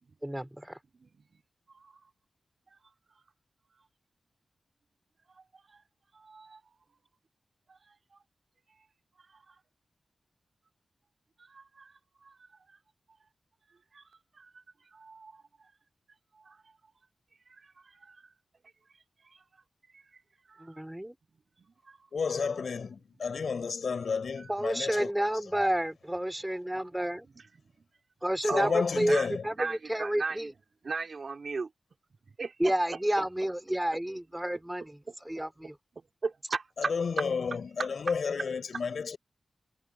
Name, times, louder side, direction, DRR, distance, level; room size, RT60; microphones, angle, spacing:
voice 1, 0.2-0.8 20.6-21.1 24.5-27.2 28.2-29.2 29.4-30.5 32.6-34.9 35.3-35.7, right 1 dB, 5° right, 4.1 m, -30 dB
voice 2, 0.9-1.4 1.7-2.1 2.8-3.2 3.7-3.9 5.3-5.8 6.1-6.8 7.7-8.2 8.7-8.9 9.2-9.6 11.4-12.8 13.2-13.3 13.7-15.7 16.3-16.8 17.5-18.3 18.9-19.4 19.9-20.8 21.6-22.9 23.9-24.5 25.1-25.2 26.1-26.3 26.7-27.6 28.3-31.7 32.3-33.5 33.9-34.0 34.8-35.1 35.6-38.8, right 4 dB, 55° right, 3.8 m, -41 dB
voice 3, 22.1-25.1 28.5-29.5 36.9-39.2, left 5 dB, 70° left, 5.8 m, -31 dB
wide cardioid pair, 95°, 0 cm